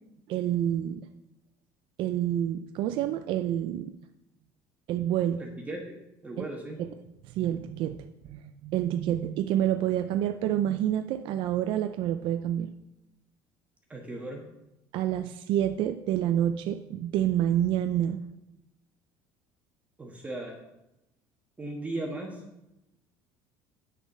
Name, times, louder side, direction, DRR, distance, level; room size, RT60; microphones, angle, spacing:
voice 1, 0.3-1.1 2.0-3.9 4.9-5.4 6.4-6.5 6.8-6.9 7.2-12.7 14.9-18.2, right 11 dB, 60° right, 7 dB, 0.5 m, -28 dB
voice 2, 5.4-5.9 6.2-6.8 13.9-14.5 20.0-20.5 21.6-22.4, right 2 dB, 15° right, 0 dB, 1.5 m, -37 dB
8.5 x 6.6 x 5.4 m, 0.92 s
cardioid pair, 145°, 10 cm